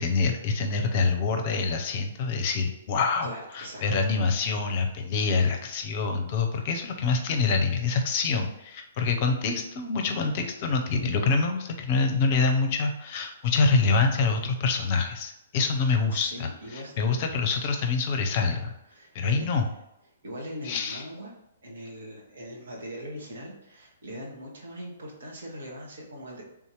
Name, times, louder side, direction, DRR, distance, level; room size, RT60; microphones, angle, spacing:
voice 1, 0.0-18.7 19.1-19.7 20.6-21.0, left 4 dB, 35° left, 5 dB, 0.6 m, -26 dB
voice 2, 3.2-3.8 16.1-17.0 18.9-19.5 20.2-21.3 21.6-26.4, equal, 55° right, -2 dB, 1.2 m, -41 dB
3.6 x 2.8 x 4.7 m, 0.87 s
figure-of-eight pair, 120°, 0 cm